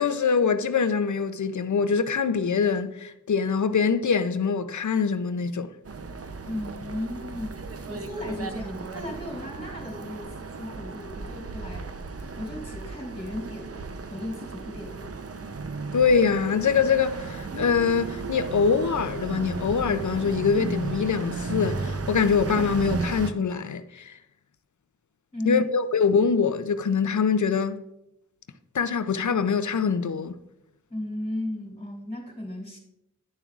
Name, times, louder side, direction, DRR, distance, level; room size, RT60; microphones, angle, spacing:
voice 1, 0.0-5.7 15.9-24.2 25.5-27.8 28.7-30.3, left 5 dB, 75° left, 0.5 m, -24 dB
sound 1, 5.8-23.3, right 4 dB, 50° right, 0.6 m, -34 dB
voice 2, 6.4-7.6 7.9-13.8 14.1-15.1 25.3-25.7 30.9-32.8, left 1 dB, 20° left, 2.9 m, -35 dB
10.5 x 7.0 x 2.4 m
wide cardioid pair, 55°, 30 cm